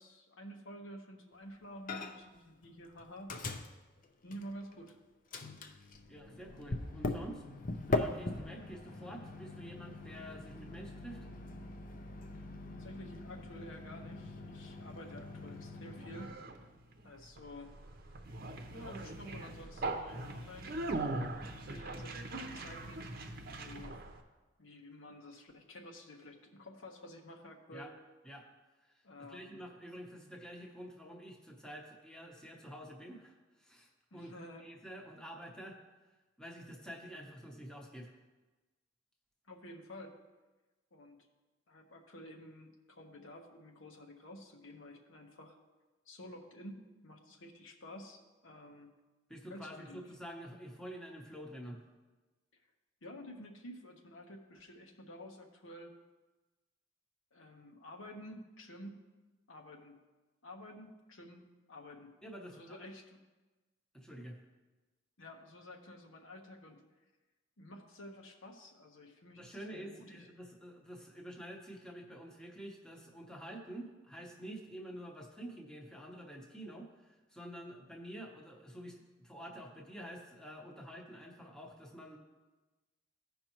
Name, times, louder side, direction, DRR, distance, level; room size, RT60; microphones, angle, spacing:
voice 1, 0.0-3.3 4.2-5.0 12.3-12.4 12.7-16.3 17.0-17.7 18.2-18.4 18.7-22.2 22.5-23.0 23.6-23.9 24.6-27.9 29.0-29.6 34.1-34.6 39.5-40.1 40.9-41.2 41.7-45.6 46.1-48.9 49.5-50.0 53.0-55.9 57.3-59.0 59.5-60.0 60.4-62.1 62.5-63.2 65.2-66.8 67.6-70.3, left 1 dB, 85° left, 2 dB, 1.1 m, -51 dB
Microwave oven, 1.9-2.4 2.6-4.9 5.3-16.3, left 2 dB, 45° left, 0.6 m, -41 dB
voice 2, 6.1-7.6 7.9-11.3 27.7-27.9 28.2-28.4 29.3-34.3 34.6-35.8 36.4-38.1 49.3-51.8 62.2-62.9 63.9-64.4 69.3-76.9 77.3-82.2, equal, 5° left, 0 dB, 0.9 m, -48 dB
Conversation, 14.7-24.2, right 2 dB, 50° right, 0.8 m, -41 dB
15.5 x 5.3 x 3.0 m, 1.2 s
head